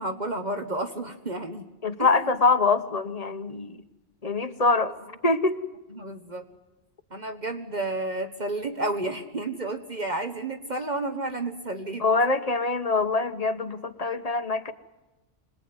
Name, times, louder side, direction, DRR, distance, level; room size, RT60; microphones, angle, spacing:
voice 1, 0.0-1.6 2.0-2.2 5.9-6.4 7.1-12.0, right 2 dB, 45° right, 6 dB, 1.4 m, -31 dB
voice 2, 1.8-3.8 4.2-4.9 5.2-5.6 12.0-14.7, left 3 dB, 35° left, 9 dB, 1.1 m, -24 dB
25.5 x 19.5 x 9.6 m, 1.0 s
omnidirectional pair, 1.1 m